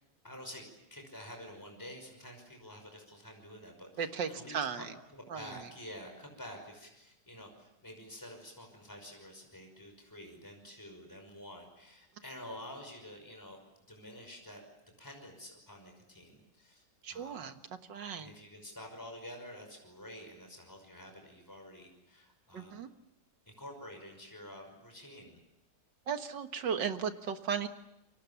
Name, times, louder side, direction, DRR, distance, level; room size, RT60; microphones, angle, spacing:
voice 1, 0.2-0.6 0.9-13.6 13.9-14.6 15.0-16.8 17.1-17.6 18.2-22.8 23.5-25.4, left 1 dB, 10° left, 3 dB, 5.6 m, -49 dB
voice 2, 4.0-4.8 5.3-5.4 17.0-17.6 17.9-18.3 22.5-22.9 26.1-27.7, right 7 dB, 80° right, 8 dB, 2.1 m, -35 dB
29.0 x 24.0 x 7.1 m, 0.86 s
omnidirectional pair, 1.9 m